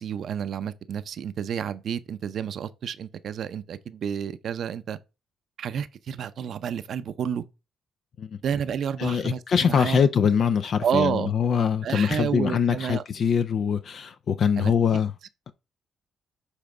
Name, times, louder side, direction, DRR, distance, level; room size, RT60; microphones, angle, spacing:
voice 1, 0.0-5.0 5.6-7.4 8.4-10.0 10.8-11.3 11.8-13.0 14.6-14.7, right 8 dB, 65° right, 0.6 m, -30 dB
voice 2, 9.0-15.1, left 7 dB, 60° left, 0.5 m, -23 dB
7.2 x 3.4 x 4.9 m
cardioid pair, 90°, 0 cm